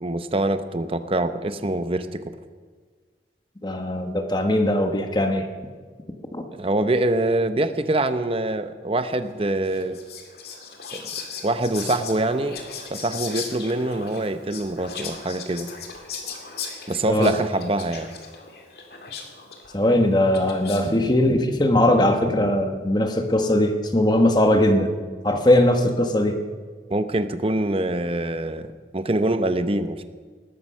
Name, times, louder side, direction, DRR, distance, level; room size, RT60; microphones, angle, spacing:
voice 1, 0.0-2.2 6.5-10.0 10.9-11.1 11.4-12.6 12.9-15.7 16.9-18.1 26.9-30.0, right 2 dB, 30° right, 10 dB, 0.8 m, -24 dB
voice 2, 3.6-5.5 6.3-6.4 17.1-17.3 19.7-24.9 25.2-26.4, left 1 dB, 25° left, 5 dB, 1.4 m, -20 dB
Whispering, 9.6-21.0, left 6 dB, 60° left, 2.3 m, -38 dB
19.0 x 13.5 x 5.6 m, 1.5 s
head